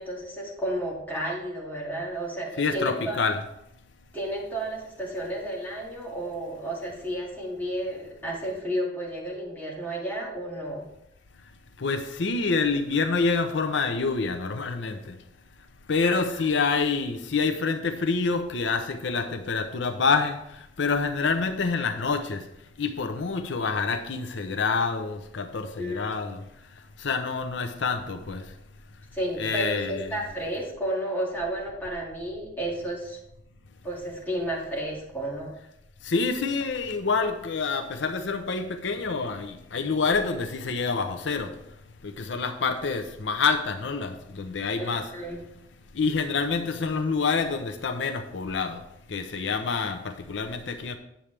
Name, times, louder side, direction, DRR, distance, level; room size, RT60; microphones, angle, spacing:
voice 1, 0.0-3.2 4.1-10.9 16.0-16.4 25.8-26.1 29.1-33.2 33.8-35.5 44.8-45.4, right 1 dB, 10° left, -5 dB, 2.2 m, -32 dB
voice 2, 2.6-3.4 11.8-15.0 15.9-20.4 20.8-22.4 22.8-26.4 27.0-28.4 29.4-30.2 36.1-41.5 42.0-45.1 46.0-48.8 49.1-51.0, left 4 dB, 80° left, 7 dB, 0.6 m, -27 dB
8.9 x 7.1 x 3.3 m, 0.82 s
head